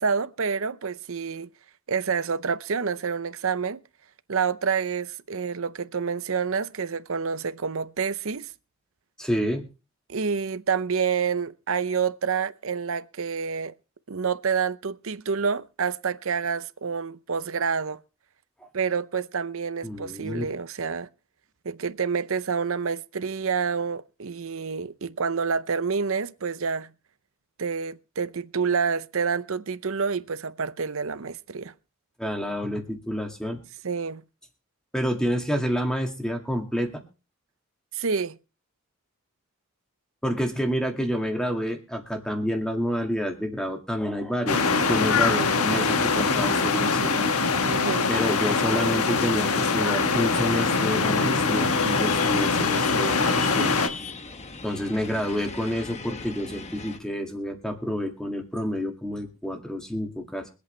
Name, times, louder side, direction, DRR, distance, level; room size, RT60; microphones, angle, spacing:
voice 1, 0.0-1.5 1.9-3.8 4.3-8.5 10.1-13.7 14.1-18.0 18.7-21.1 21.6-26.9 27.6-31.7 33.8-34.2 37.9-38.4 45.0-45.4 47.6-48.1, right 5 dB, 70° right, 0.7 m, -28 dB
voice 2, 9.2-9.7 19.8-20.4 32.2-33.6 34.9-37.0 40.2-47.3 48.1-53.7 54.6-60.5, equal, 5° left, 2.0 m, -29 dB
sound 1, 44.5-53.9, left 4 dB, 85° left, 1.3 m, -23 dB
sound 2, 50.0-57.0, left 4 dB, 30° left, 1.0 m, -37 dB
24.0 x 8.4 x 3.3 m
head